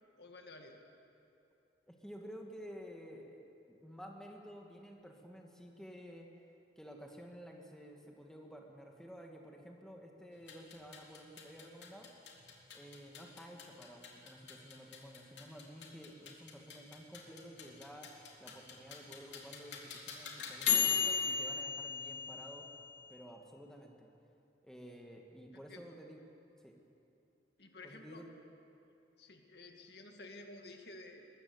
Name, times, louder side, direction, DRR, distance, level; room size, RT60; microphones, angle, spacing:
voice 1, 0.2-0.8 25.5-25.8 27.6-28.3 29.2-31.2, left 2 dB, 65° left, 3 dB, 2.1 m, -52 dB
voice 2, 1.9-3.4 3.7-6.3 6.8-12.1 12.7-18.1 18.4-22.7 23.1-24.1 24.6-26.2 26.6-26.7 27.8-28.3, equal, 5° left, 0 dB, 2.1 m, -52 dB
sound 1, 10.4-23.1, left 7 dB, 80° left, 3.2 m, -38 dB
22.0 x 21.0 x 8.1 m, 2.7 s
head